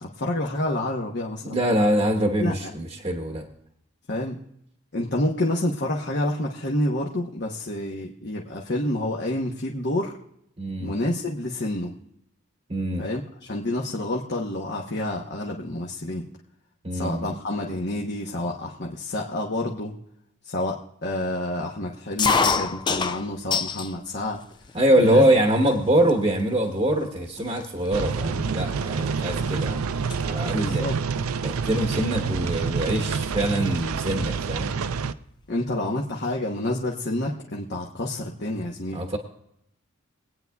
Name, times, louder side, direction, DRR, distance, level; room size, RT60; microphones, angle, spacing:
voice 1, 0.0-1.6 2.4-2.7 4.1-4.4 4.9-10.2 10.8-11.9 13.0-16.3 16.9-19.9 20.4-24.4 25.0-25.2 30.4-31.0 35.5-39.0, left 1 dB, 50° left, -1 dB, 1.0 m, -28 dB
voice 2, 1.4-3.4 10.6-10.9 12.7-13.0 16.8-17.3 24.7-30.9 31.4-34.7 38.9-39.2, right 1 dB, 25° right, 2 dB, 1.0 m, -24 dB
sound 1, 22.2-23.9 24.3-25.0 25.7-25.8 26.0-26.4 27.0-27.1 27.4-29.6 29.9-30.2 31.5-31.8 32.9-33.0 33.2-33.3 33.6-34.5, left 5 dB, 20° left, 0.3 m, -27 dB
sound 2, 27.9-35.1, right 5 dB, 80° right, 0.5 m, -27 dB
23.0 x 9.3 x 2.3 m, 0.77 s
head